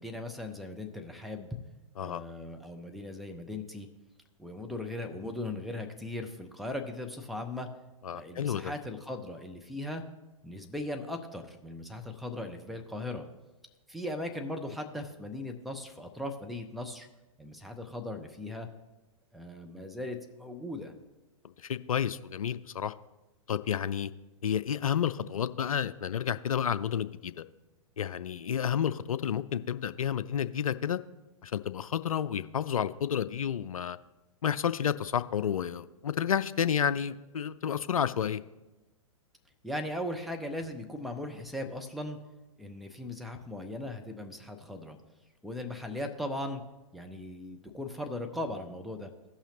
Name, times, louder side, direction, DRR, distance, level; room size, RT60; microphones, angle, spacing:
voice 1, 0.0-1.6 2.0-3.9 4.4-7.7 8.1-10.0 10.4-13.3 13.9-17.1 17.4-18.7 19.3-20.9 39.6-42.2 42.6-45.0 45.4-46.6 46.9-49.1, left 1 dB, ahead, 4 dB, 0.7 m, -38 dB
voice 2, 8.0-8.7 21.6-22.9 23.5-24.1 24.4-27.4 28.0-31.0 31.4-34.0 34.4-38.4, left 8 dB, 75° left, 14 dB, 0.4 m, -30 dB
16.0 x 5.7 x 2.9 m, 1.1 s
figure-of-eight pair, 110°, 18 cm